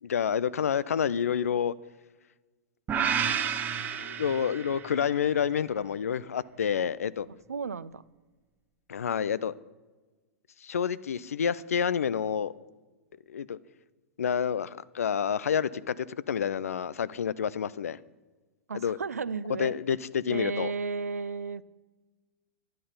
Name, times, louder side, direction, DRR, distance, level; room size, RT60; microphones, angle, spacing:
voice 1, 0.0-1.7 3.9-7.3 8.9-9.5 10.6-12.5 13.3-13.6 14.2-18.0 18.7-19.0 19.6-20.7, left 7 dB, 75° left, 0.4 m, -29 dB
sound 1, 2.9-5.1, right 8 dB, 20° right, 0.7 m, -30 dB
voice 2, 7.5-8.0 18.7-19.8 20.3-21.6, right 5 dB, 80° right, 0.4 m, -33 dB
11.0 x 10.0 x 5.6 m
figure-of-eight pair, 100°, 8 cm